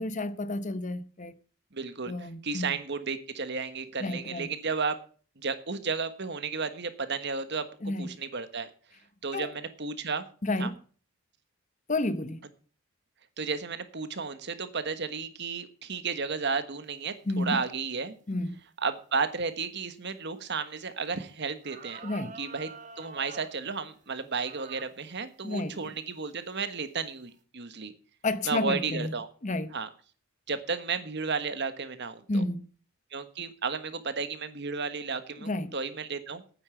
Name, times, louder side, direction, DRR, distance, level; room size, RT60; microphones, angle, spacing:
voice 1, 0.0-1.3 2.1-2.7 4.0-4.5 7.8-8.2 9.3-9.5 10.4-10.8 11.9-12.4 17.3-17.6 18.3-18.6 22.0-22.4 25.4-25.8 28.2-29.1 29.4-29.7 32.3-32.7 35.4-35.7, left 2 dB, 35° left, 0.8 m, -31 dB
voice 2, 1.7-5.0 5.4-8.7 9.2-10.2 10.6-10.7 13.4-18.1 18.8-22.0 22.4-22.7 23.0-27.9 28.5-29.3 29.7-29.9 30.5-32.4 33.1-36.4, right 4 dB, 50° right, 1.3 m, -33 dB
sound 1, 21.1-21.2 21.6-23.6 24.4-24.9 25.5-25.6 26.4-26.7, right 5 dB, 35° right, 1.3 m, -46 dB
9.3 x 8.9 x 7.8 m
head